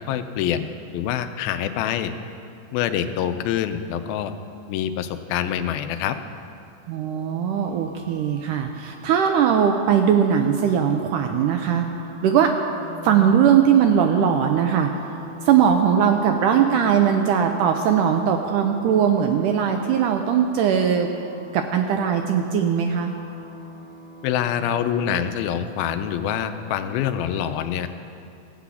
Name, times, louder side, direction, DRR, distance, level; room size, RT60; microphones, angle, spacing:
voice 1, 0.0-2.1 2.7-4.3 4.7-6.2 24.2-27.9, left 9 dB, 90° left, 9 dB, 2.5 m, -25 dB
voice 2, 6.9-11.9 12.2-12.5 13.0-14.9 15.5-21.1 21.5-23.1, right 8 dB, 80° right, 5 dB, 1.8 m, -20 dB
sound 1, 7.5-26.8, left 1 dB, 45° left, 1.7 m, -42 dB
15.5 x 6.1 x 8.3 m, 2.5 s
omnidirectional pair, 4.1 m